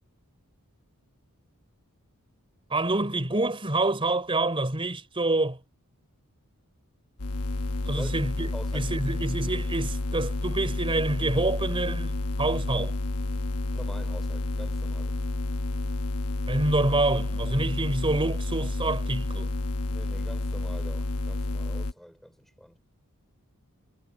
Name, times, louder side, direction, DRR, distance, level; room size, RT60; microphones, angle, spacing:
voice 1, 2.7-5.6 7.9-12.9 16.5-19.5, right 2 dB, 25° right, 3.7 m, -27 dB
sound 1, 7.2-21.9, left 2 dB, 80° left, 1.1 m, -30 dB
voice 2, 8.5-9.0 13.7-15.2 19.9-22.8, equal, ahead, 5.1 m, -44 dB
head